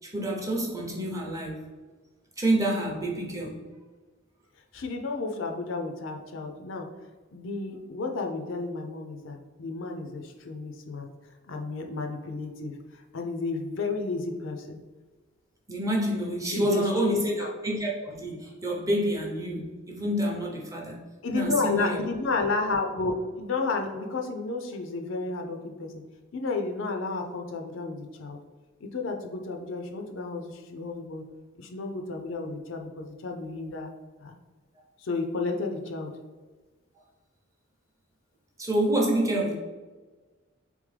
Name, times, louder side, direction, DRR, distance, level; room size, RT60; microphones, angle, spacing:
voice 1, 0.1-1.7 2.4-3.6 15.7-21.1 21.3-22.0 38.6-39.5, right 1 dB, 15° right, -2 dB, 0.7 m, -28 dB
voice 2, 4.7-6.9 7.3-11.1 11.5-12.8 13.1-14.8 16.5-17.5 21.2-26.0 26.3-28.4 28.8-31.2 31.6-33.9 34.2-34.3 35.0-36.1, left 3 dB, 65° left, 4 dB, 0.5 m, -32 dB
3.6 x 3.5 x 3.2 m, 1.3 s
head